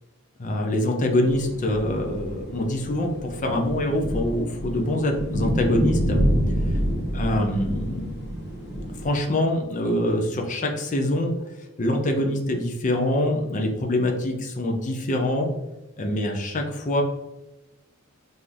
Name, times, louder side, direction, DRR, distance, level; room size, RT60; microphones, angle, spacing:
voice 1, 0.4-6.2 7.1-8.1 9.0-15.5 16.0-17.0, left 1 dB, 35° left, 3 dB, 0.6 m, -25 dB
sound 1, 1.2-9.2, equal, 50° left, 1.1 m, -28 dB
5.7 x 2.7 x 3.3 m, 1.0 s
head